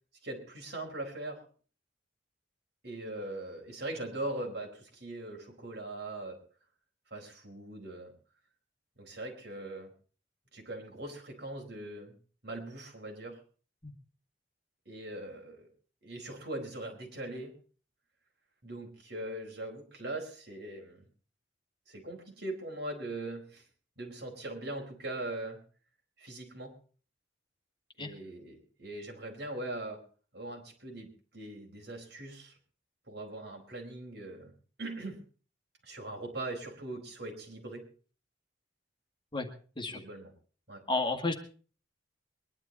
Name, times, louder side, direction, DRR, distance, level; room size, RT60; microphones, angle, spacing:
voice 1, 0.2-1.4 2.8-6.4 7.1-8.1 9.0-9.9 10.5-12.1 12.4-13.4 14.8-15.7 16.0-17.5 18.6-21.0 21.9-23.6 24.0-25.6 26.2-26.7 28.0-30.0 30.3-32.5 33.1-34.5 34.8-35.2 35.8-37.9 39.9-40.3 40.7-40.8, right 2 dB, 60° right, 0 dB, 4.9 m, -41 dB
voice 2, 40.9-41.3, left 3 dB, 25° left, 5 dB, 1.8 m, -31 dB
22.5 x 11.5 x 4.2 m, 0.40 s
head